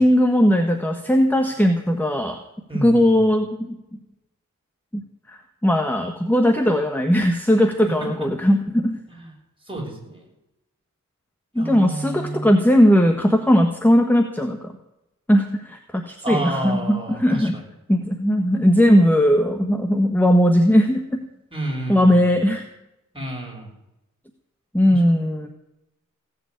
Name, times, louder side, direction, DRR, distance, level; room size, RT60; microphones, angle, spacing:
voice 1, 0.0-2.4 2.8-4.0 4.9-5.0 5.3-9.0 11.5-14.7 15.3-17.5 17.9-21.2 21.9-22.6 24.7-25.5, equal, 5° left, 5 dB, 1.5 m, -18 dB
voice 2, 2.7-3.3 8.0-8.1 9.1-9.3 9.7-10.3 11.6-12.5 16.2-17.7 21.5-22.4 23.1-23.7 24.9-25.0, right 1 dB, 15° right, -1 dB, 6.4 m, -30 dB
16.5 x 6.9 x 9.5 m, 0.88 s
cardioid pair, 50°, 31 cm